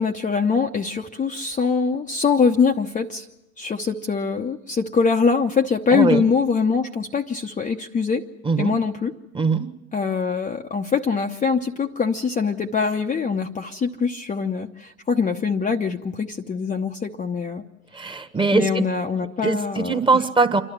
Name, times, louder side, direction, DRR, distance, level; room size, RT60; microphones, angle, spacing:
voice 1, 0.0-3.3 3.6-8.3 8.6-9.1 9.9-17.6 18.5-20.2, left 5 dB, 15° left, 3 dB, 0.9 m, -23 dB
voice 2, 5.9-6.2 8.4-8.7 9.3-9.7 17.9-18.9 19.4-19.6 19.8-20.6, right 4 dB, 10° right, 8 dB, 1.4 m, -21 dB
27.5 x 12.5 x 9.4 m, 1.0 s
figure-of-eight pair, 85°, 44 cm